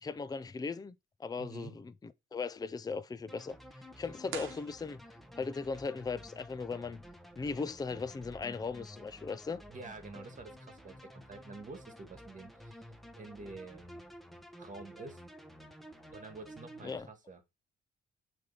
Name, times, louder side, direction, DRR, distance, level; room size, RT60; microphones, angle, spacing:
voice 1, 0.0-3.6 4.0-5.0 5.4-7.0 7.4-9.6 16.8-17.1, left 4 dB, 20° left, 0.5 m, -38 dB
voice 2, 1.4-1.7 9.7-12.9 13.2-14.1 14.5-15.2 16.1-17.4, right 3 dB, 40° right, 1.8 m, -48 dB
sound 1, 3.3-17.0, equal, ahead, 1.1 m, -52 dB
sound 2, 4.3-5.5, right 10 dB, 85° right, 1.0 m, -46 dB
7.5 x 3.6 x 5.6 m
cardioid pair, 90°, 20 cm